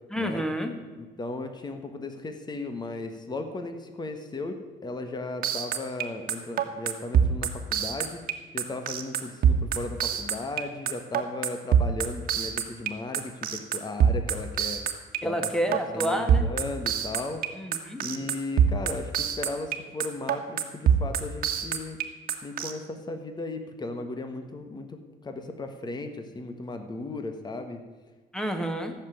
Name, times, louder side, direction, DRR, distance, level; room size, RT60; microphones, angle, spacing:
voice 1, 0.1-0.7 15.2-16.5 17.6-18.0 28.3-28.9, equal, 5° left, 6 dB, 1.8 m, -29 dB
voice 2, 1.0-8.2 8.5-14.8 15.2-17.4 18.0-22.0 22.4-27.8, left 2 dB, 25° left, 7 dB, 1.5 m, -36 dB
sound 1, 5.4-22.7, right 8 dB, 55° right, 1.5 m, -24 dB
15.0 x 7.1 x 9.2 m, 1.3 s
cardioid pair, 110°, 17 cm